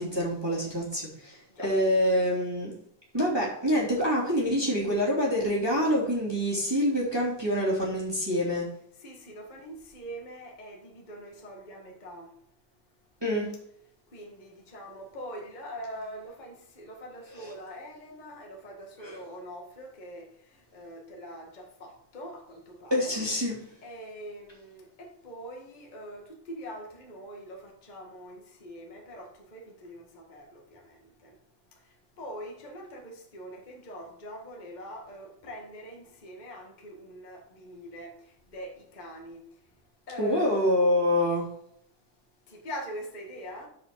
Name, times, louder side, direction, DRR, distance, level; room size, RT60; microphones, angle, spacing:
voice 1, 0.0-2.7 3.1-8.7 13.2-13.5 17.4-17.5 19.0-19.2 22.9-23.6 40.2-41.5, equal, 10° right, 2.3 m, -26 dB
voice 2, 9.0-12.3 14.1-23.1 23.8-31.4 31.8-39.4 40.1-40.7 42.5-43.7, equal, 25° left, 1.1 m, -43 dB
7.4 x 5.1 x 6.9 m
omnidirectional pair, 3.6 m